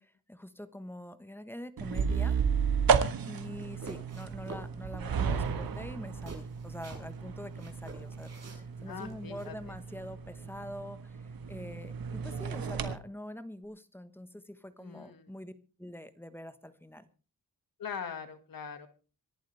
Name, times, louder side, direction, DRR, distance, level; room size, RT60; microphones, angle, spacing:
voice 1, 0.0-2.4 3.2-15.5 15.8-17.1, left 1 dB, 5° left, 11 dB, 1.2 m, -45 dB
sound 1, 1.8-12.9, right 6 dB, 90° right, 1.6 m, -33 dB
sound 2, 3.5-4.7 5.1-5.2 5.4-7.2 7.6-9.5, right 2 dB, 45° right, 7.1 m, -48 dB
voice 2, 8.9-9.5 14.8-15.3 17.8-18.9, left 6 dB, 80° left, 9 dB, 2.0 m, -41 dB
26.5 x 11.5 x 3.4 m, 0.35 s
wide cardioid pair, 130°, 34 cm